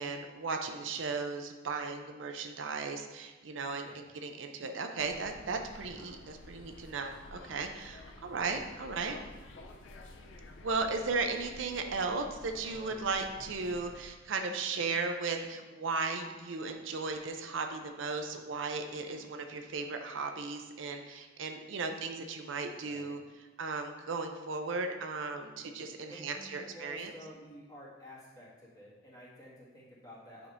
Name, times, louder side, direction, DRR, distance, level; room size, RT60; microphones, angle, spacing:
voice 1, 0.0-9.2 10.6-23.2 23.6-27.1, right 4 dB, 85° right, 5 dB, 0.6 m, -36 dB
sound 1, 5.0-14.1, left 2 dB, 90° left, 0.6 m, -51 dB
voice 2, 22.8-23.2 26.1-30.5, equal, 20° left, -8 dB, 1.9 m, -51 dB
8.6 x 5.2 x 2.6 m, 1.2 s
head